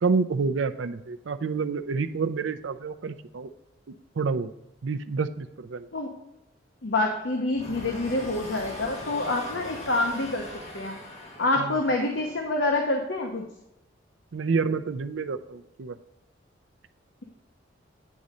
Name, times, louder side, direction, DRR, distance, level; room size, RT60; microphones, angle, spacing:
voice 1, 0.0-3.5 4.2-4.5 4.8-5.9 11.6-11.7 14.3-16.0, right 4 dB, 80° right, 11 dB, 0.5 m, -28 dB
voice 2, 6.8-10.5 10.7-11.0 11.4-13.4, left 2 dB, 75° left, 2 dB, 0.9 m, -27 dB
sound 1, 7.5-12.7, left 1 dB, 35° left, 1.5 m, -40 dB
9.3 x 4.2 x 5.0 m, 0.88 s
head